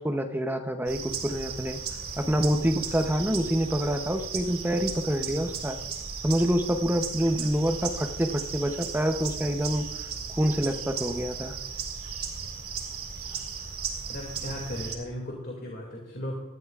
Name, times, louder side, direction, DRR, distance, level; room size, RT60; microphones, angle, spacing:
voice 1, 0.0-1.8 2.2-5.8 6.2-9.9 10.4-11.6, equal, 10° right, 6 dB, 0.7 m, -27 dB
sound 1, 0.9-14.9, right 6 dB, 80° right, 2.1 m, -36 dB
voice 2, 14.1-16.4, left 1 dB, 45° left, -1 dB, 2.3 m, -36 dB
19.5 x 13.0 x 2.4 m, 1.1 s
head